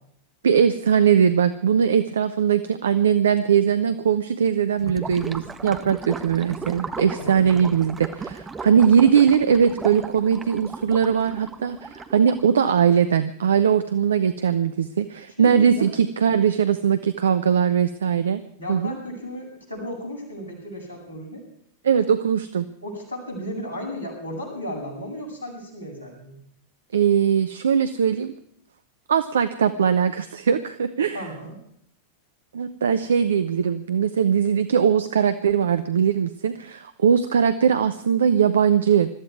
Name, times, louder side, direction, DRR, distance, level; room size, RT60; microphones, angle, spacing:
voice 1, 0.4-18.4 18.7-19.0 21.8-22.7 26.9-28.3 29.1-31.3 32.5-39.1, right 7 dB, 65° right, 11 dB, 0.8 m, -20 dB
Gurgling / Liquid, 4.8-12.5, right 4 dB, 15° right, 1.3 m, -36 dB
voice 2, 7.1-7.8 15.4-15.9 18.6-21.4 22.8-26.4 31.1-31.6, equal, 85° right, 0 dB, 7.7 m, -34 dB
22.0 x 13.5 x 4.8 m, 0.67 s
figure-of-eight pair, 90°, 0 cm